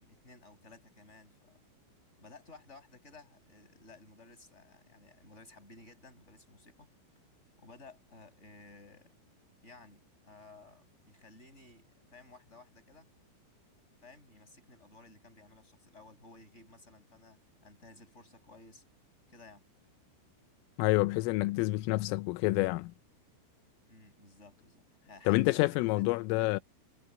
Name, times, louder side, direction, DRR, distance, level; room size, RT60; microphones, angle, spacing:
voice 1, 0.0-1.6 2.2-6.9 7.6-9.2 9.6-13.1 14.0-18.8 19.3-19.7 23.9-26.1 26.4-26.5, left 3 dB, 15° left, 8.1 m, -56 dB
voice 2, 20.8-22.9 25.3-26.6, left 21 dB, 85° left, 3.3 m, -28 dB
omnidirectional pair, 5.8 m